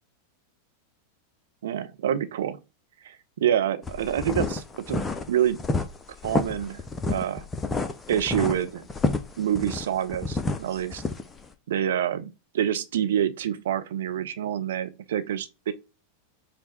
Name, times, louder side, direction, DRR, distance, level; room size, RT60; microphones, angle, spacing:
voice 1, 1.6-2.6 3.0-3.2 3.4-5.6 6.2-6.8 7.1-7.5 8.1-8.9 9.4-11.0 11.7-15.7, right 10 dB, 60° right, 0.6 m, -27 dB
sound 1, 3.8-11.5, left 3 dB, 15° left, 0.6 m, -29 dB
5.1 x 2.2 x 4.2 m
figure-of-eight pair, 90°, 0 cm